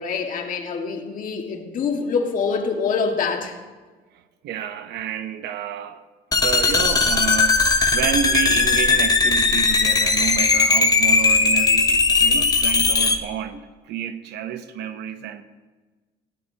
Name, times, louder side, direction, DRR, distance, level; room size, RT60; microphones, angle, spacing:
voice 1, 0.0-3.6, left 5 dB, 55° left, 1.9 m, -25 dB
voice 2, 4.1-6.0 6.4-15.4, right 9 dB, 75° right, 0.9 m, -29 dB
sound 1, 6.3-13.2, left 4 dB, 20° left, 1.0 m, -18 dB
17.0 x 16.0 x 2.9 m
cardioid pair, 110°, 17 cm